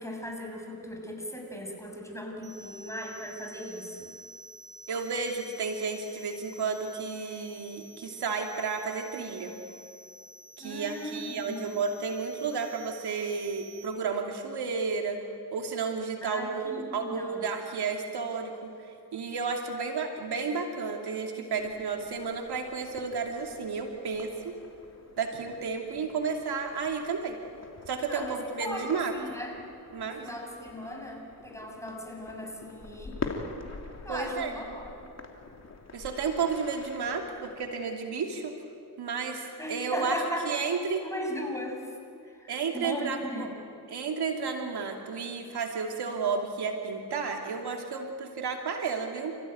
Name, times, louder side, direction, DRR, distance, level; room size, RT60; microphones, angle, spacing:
voice 1, 0.0-4.1 10.6-11.7 16.2-17.5 28.1-29.5 30.0-33.2 34.1-34.9 39.6-40.6 41.0-41.8 42.7-43.5, equal, 5° left, 1 dB, 6.9 m, -37 dB
sound 1, 2.4-13.8, right 2 dB, 50° right, 5.2 m, -50 dB
voice 2, 4.9-9.5 10.6-15.2 15.5-18.7 19.1-24.5 25.2-27.4 27.9-29.1 29.9-30.2 34.1-34.5 35.9-38.5 39.0-40.2 40.4-41.0 42.5-43.5 43.9-49.4, right 5 dB, 75° right, 2 dB, 2.8 m, -32 dB
sound 2, 21.5-37.7, left 3 dB, 40° left, 3.2 m, -45 dB
30.0 x 16.0 x 9.4 m, 2.5 s
cardioid pair, 65°, 39 cm